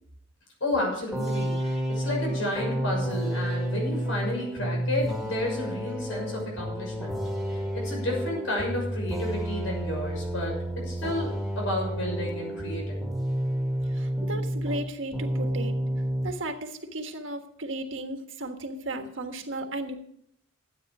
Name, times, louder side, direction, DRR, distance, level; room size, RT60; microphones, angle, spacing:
voice 1, 0.6-7.2 7.5-10.5 10.8-13.0, left 1 dB, 80° left, -1 dB, 6.3 m, -31 dB
sound 1, 1.1-14.9 15.1-16.3, equal, ahead, 2.2 m, -30 dB
voice 2, 13.9-15.8 16.2-20.0, right 1 dB, 70° right, 5 dB, 1.5 m, -35 dB
13.0 x 8.9 x 4.9 m, 0.70 s
head